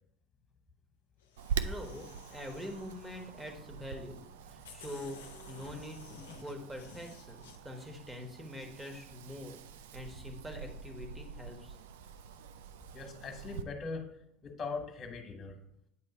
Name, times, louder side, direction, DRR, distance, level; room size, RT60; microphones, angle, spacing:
sound 1, 1.2-3.6 4.2-4.3 4.6-7.6, left 5 dB, 85° left, 0.7 m, -54 dB
Wind, 1.4-13.6, right 6 dB, 80° right, 0.4 m, -44 dB
voice 1, 1.6-4.2 4.5-5.2 5.5-6.0 6.3-9.6 9.9-11.8, left 1 dB, 15° right, 4 dB, 1.3 m, -44 dB
voice 2, 12.9-14.1 14.4-15.6, left 4 dB, 40° left, 3 dB, 1.5 m, -40 dB
8.7 x 3.2 x 4.3 m, 0.75 s
hypercardioid pair, 80°, 0 cm